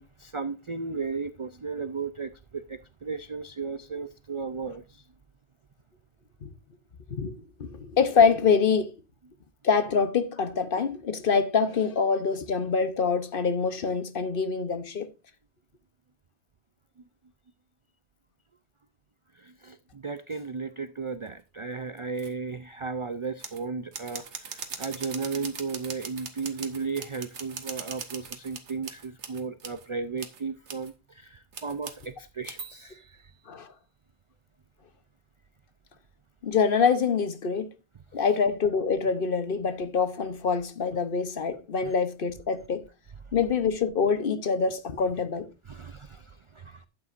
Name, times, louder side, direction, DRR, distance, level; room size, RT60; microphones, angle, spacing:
voice 1, 0.0-5.0 19.3-33.2 41.8-41.9 45.7-46.9, right 4 dB, 50° right, 0.4 m, -35 dB
voice 2, 7.6-8.9 9.6-15.1 33.5-33.7 36.4-37.7 38.1-42.9 43.3-45.5, left 5 dB, 55° left, 1.0 m, -25 dB
sound 1, 22.0-22.3 23.4-23.6 23.9-29.8 30.2-30.4 30.7-30.9 31.5-32.1 32.4-33.1, right 6 dB, 85° right, 1.4 m, -40 dB
12.0 x 8.7 x 2.5 m
omnidirectional pair, 1.1 m